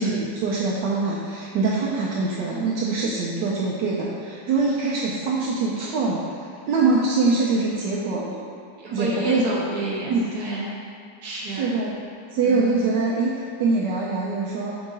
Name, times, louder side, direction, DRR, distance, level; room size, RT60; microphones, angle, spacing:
voice 1, 0.0-8.3 8.9-9.4 10.1-10.3 11.5-12.0 12.3-14.8, right 3 dB, 80° right, -4 dB, 1.2 m, -24 dB
voice 2, 8.8-10.7 11.2-11.7 12.4-12.9, right 1 dB, 60° right, -5 dB, 1.6 m, -29 dB
4.6 x 3.9 x 5.2 m, 2.3 s
omnidirectional pair, 2.0 m